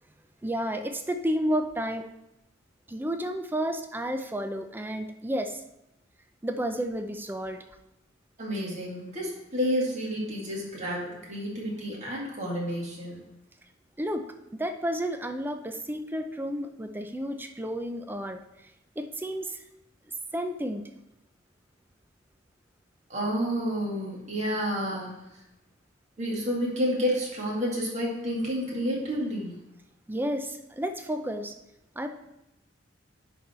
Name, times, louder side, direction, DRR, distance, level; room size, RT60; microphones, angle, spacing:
voice 1, 0.4-2.0 2.9-5.6 6.4-7.6 14.0-14.3 14.5-18.7 19.0-19.6 20.3-20.8 30.1-31.6 32.0-32.1, equal, 10° right, 6 dB, 0.5 m, -31 dB
voice 2, 8.4-13.2 23.1-25.1 26.2-29.5, equal, 40° right, -3 dB, 2.2 m, -30 dB
10.0 x 4.1 x 4.3 m, 0.88 s
head